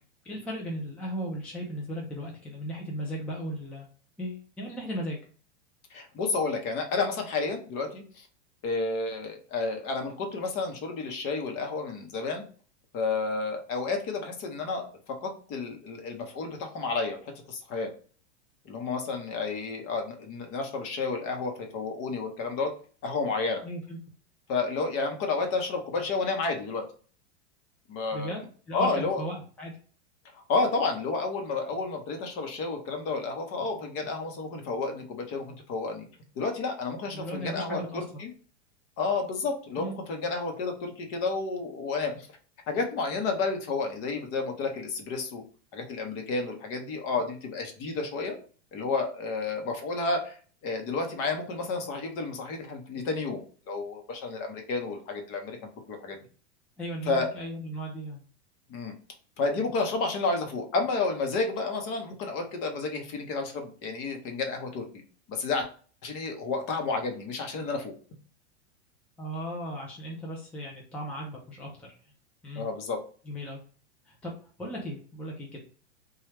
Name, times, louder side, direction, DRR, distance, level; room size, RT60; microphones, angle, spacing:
voice 1, 0.2-3.9 4.2-5.2 23.6-24.0 28.1-29.7 37.1-38.0 39.8-40.0 56.8-58.2 69.2-71.9 72.4-72.7 73.3-73.6 74.1-74.3 74.6-75.6, equal, 5° left, -3 dB, 0.4 m, -36 dB
voice 2, 5.9-8.3 8.6-12.4 12.9-14.9 15.2-17.9 18.6-22.7 23.0-23.6 24.5-26.8 27.9-28.3 28.7-29.2 30.3-36.1 36.4-38.3 39.0-42.3 42.7-45.4 45.7-48.3 48.7-50.3 50.6-53.4 53.7-56.2 57.1-57.3 58.7-58.9 59.4-64.9 65.3-65.7 66.0-67.9 72.6-73.0, left 3 dB, 40° left, 4 dB, 0.8 m, -31 dB
3.0 x 2.3 x 3.2 m, 0.42 s
supercardioid pair, 130°, 36 cm